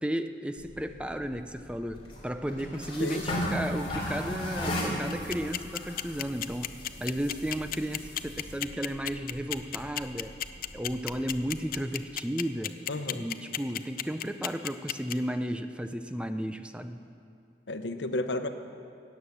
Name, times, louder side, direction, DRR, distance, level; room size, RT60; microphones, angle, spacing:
voice 1, 0.0-6.7 7.0-10.4 10.7-12.8 13.1-17.0, equal, 5° right, 9 dB, 0.4 m, -34 dB
sound 1, 0.6-11.8, equal, 30° left, 3.2 m, -38 dB
voice 2, 3.0-3.4 12.9-13.2 17.7-18.5, left 2 dB, 90° left, 9 dB, 0.9 m, -32 dB
sound 2, 5.1-15.1, left 12 dB, 55° left, 0.5 m, -32 dB
16.0 x 9.5 x 7.2 m, 2.6 s
head